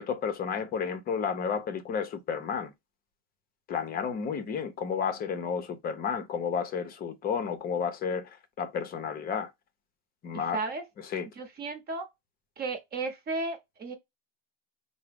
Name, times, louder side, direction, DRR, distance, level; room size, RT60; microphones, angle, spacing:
voice 1, 0.0-2.7 3.7-9.5 10.2-10.6 11.0-11.3, left 6 dB, 25° left, 0.7 m, -32 dB
voice 2, 10.3-10.8 11.4-12.1 12.6-14.0, right 3 dB, 25° right, 0.9 m, -34 dB
4.7 x 2.0 x 3.5 m
supercardioid pair, 125°, 34 cm